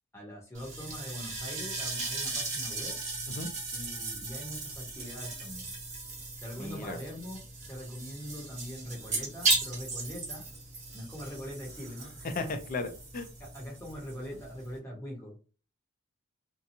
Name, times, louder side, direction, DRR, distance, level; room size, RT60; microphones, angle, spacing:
voice 1, 0.1-3.0 3.7-5.7 6.4-7.4 7.7-10.5 10.9-12.6 13.4-15.4, equal, 15° left, -3 dB, 1.0 m, -42 dB
sound 1, 0.5-14.8, right 3 dB, 35° right, 1.2 m, -36 dB
voice 2, 6.6-7.0 12.2-13.3, left 3 dB, 40° left, 8 dB, 0.5 m, -35 dB
2.8 x 2.2 x 2.6 m, 0.37 s
head